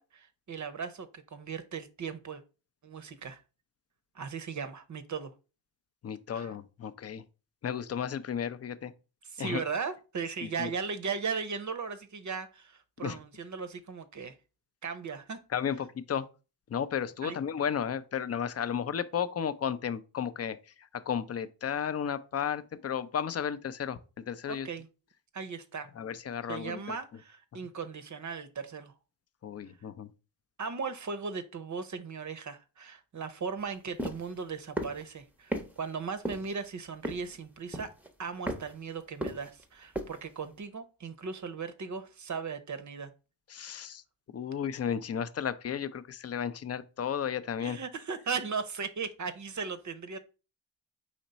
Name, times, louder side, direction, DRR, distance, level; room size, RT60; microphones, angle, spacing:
voice 1, 0.0-2.4 2.8-3.4 4.1-5.3 6.3-6.5 9.3-14.3 14.8-15.4 17.2-17.4 24.5-24.9 25.3-25.9 26.5-28.9 30.6-37.9 38.2-43.1 47.6-50.2, right 5 dB, 40° right, 0.7 m, -37 dB
voice 2, 6.0-7.2 7.6-8.9 9.4-9.6 10.4-10.7 13.0-13.2 15.5-16.3 16.7-24.0 24.2-24.7 26.0-27.0 29.4-30.1 43.5-44.0 44.3-47.8, left 8 dB, 35° left, 0.5 m, -33 dB
sound 1, 34.0-34.2 34.8-35.0 35.5-35.7 36.2-36.5 37.0-37.4 37.7-38.1 38.5-38.7 39.2-39.6 39.9-40.1, right 1 dB, 5° right, 0.7 m, -34 dB
4.2 x 3.0 x 4.0 m
cardioid pair, 55°, 44 cm